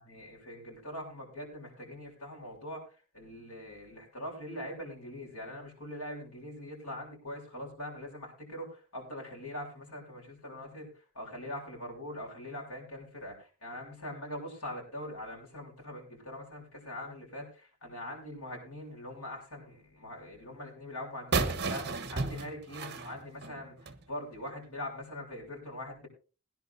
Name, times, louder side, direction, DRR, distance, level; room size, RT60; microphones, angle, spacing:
voice 1, 0.0-2.8 3.1-10.9 11.2-23.7 24.1-26.1, left 1 dB, 80° left, -1 dB, 7.0 m, -42 dB
sound 1, 21.3-24.0, right 3 dB, 50° right, 1.2 m, -33 dB
21.5 x 10.5 x 2.7 m, 0.34 s
head